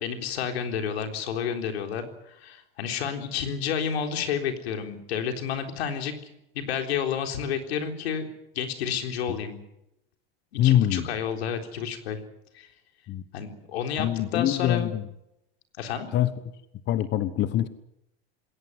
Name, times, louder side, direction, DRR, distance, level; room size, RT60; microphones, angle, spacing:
voice 1, 0.0-6.1 6.5-8.3 8.5-9.6 10.5-12.2 12.5-12.7 13.3-14.9 15.8-16.1, left 7 dB, 85° left, 5 dB, 3.9 m, -30 dB
voice 2, 10.6-11.0 13.1-13.2 14.0-15.0 16.1-16.3 16.9-17.7, left 12 dB, 35° left, 14 dB, 1.2 m, -23 dB
21.0 x 17.5 x 9.4 m, 0.84 s
supercardioid pair, 125°, 31 cm